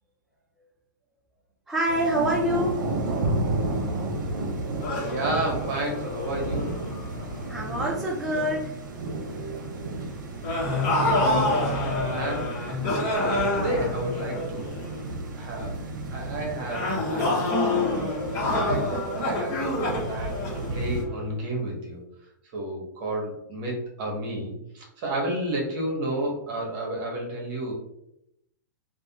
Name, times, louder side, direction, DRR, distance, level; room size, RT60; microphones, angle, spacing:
voice 1, 1.7-2.8 7.5-8.7, equal, 5° right, -6 dB, 0.5 m, -26 dB
Thunder / Rain, 1.9-21.0, right 2 dB, 75° right, 0.7 m, -33 dB
sound 1, 4.8-7.9 8.3-8.6 10.4-15.0 16.7-21.3, left 2 dB, 35° left, 0.9 m, -28 dB
voice 2, 5.0-6.8 10.7-14.7 15.3-15.7 16.1-17.8 18.0-18.9 19.2-19.6 20.0-22.0 22.5-27.7, right 1 dB, 45° right, -1 dB, 1.0 m, -32 dB
2.4 x 2.1 x 2.8 m, 0.81 s
hypercardioid pair, 125°, 10 cm